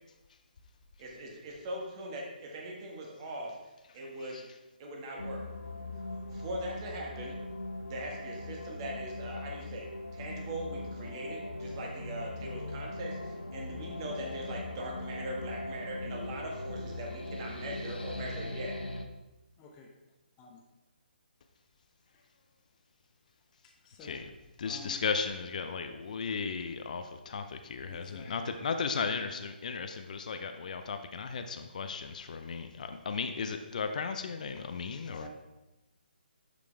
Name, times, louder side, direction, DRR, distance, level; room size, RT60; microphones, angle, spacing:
voice 1, 1.0-3.6 3.9-4.4 4.8-5.4 6.3-7.4 7.9-18.7, right 1 dB, 30° right, -1 dB, 1.7 m, -40 dB
sound 1, 5.2-19.0, left 2 dB, 80° left, 1.0 m, -40 dB
voice 2, 19.6-19.9 20.4-20.6 22.1-22.2 23.8-24.2 24.6-25.0 27.9-28.5 35.1-35.3, left 3 dB, 20° left, -1 dB, 0.9 m, -51 dB
voice 3, 24.6-35.3, left 5 dB, 50° left, 7 dB, 0.6 m, -35 dB
11.5 x 5.2 x 3.4 m, 1.0 s
figure-of-eight pair, 140°, 5 cm